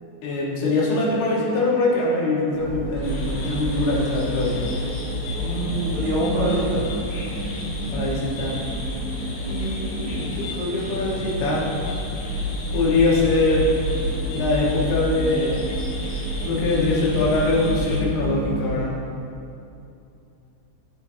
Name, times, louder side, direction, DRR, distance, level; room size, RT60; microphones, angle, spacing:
voice 1, 0.2-4.8 7.9-8.6 9.5-11.7 12.7-13.7 14.3-15.7 16.4-19.0, left 2 dB, 80° left, -6 dB, 3.7 m, -23 dB
sound 1, 2.5-18.7, equal, 75° right, 3.3 m, -29 dB
sound 2, 3.0-18.0, left 2 dB, 55° left, 2.4 m, -38 dB
voice 2, 5.3-6.9, right 1 dB, 50° right, -10 dB, 3.2 m, -25 dB
15.5 x 5.8 x 2.8 m, 2.7 s
omnidirectional pair, 4.5 m